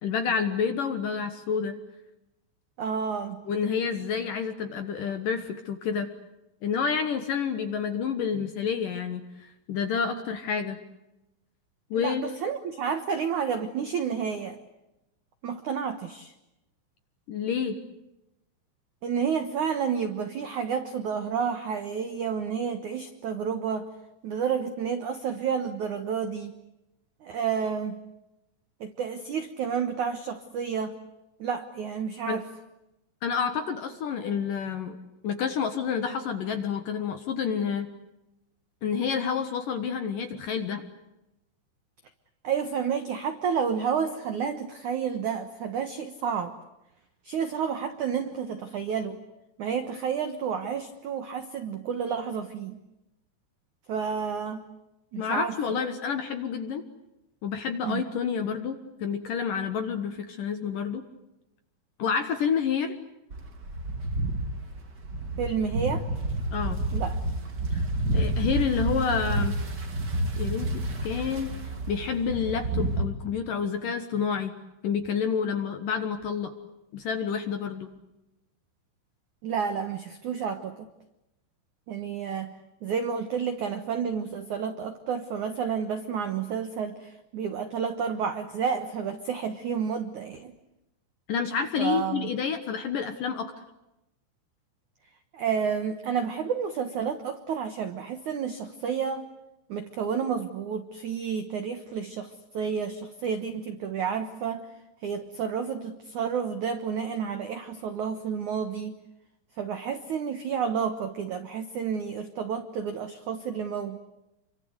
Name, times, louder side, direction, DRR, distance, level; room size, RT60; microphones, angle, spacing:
voice 1, 0.0-1.8 3.5-6.1 6.6-10.8 11.9-12.2 17.3-17.8 32.3-32.4 33.2-35.0 35.2-37.9 38.8-40.8 55.2-56.8 57.4-61.0 62.0-63.0 66.5-66.8 67.7-67.9 68.1-69.6 70.4-70.7 71.0-71.5 71.9-74.6 74.8-76.5 76.9-77.9 91.3-93.5, left 6 dB, 65° left, 8 dB, 2.3 m, -29 dB
voice 2, 2.8-3.4 12.0-14.6 15.4-16.3 19.0-23.9 24.2-26.6 27.2-28.0 28.8-31.0 31.4-32.4 42.4-46.5 47.2-49.2 49.6-52.8 53.9-54.6 55.1-55.5 57.8-58.0 65.4-66.1 66.9-67.2 79.4-80.9 81.9-90.5 91.8-92.3 95.3-99.2 99.7-104.7 105.0-109.0 109.6-114.0, right 7 dB, 80° right, 8 dB, 1.7 m, -30 dB
sound 1, 63.3-73.0, right 1 dB, 40° right, 1.6 m, -29 dB
29.5 x 24.5 x 8.1 m, 0.93 s
omnidirectional pair, 5.6 m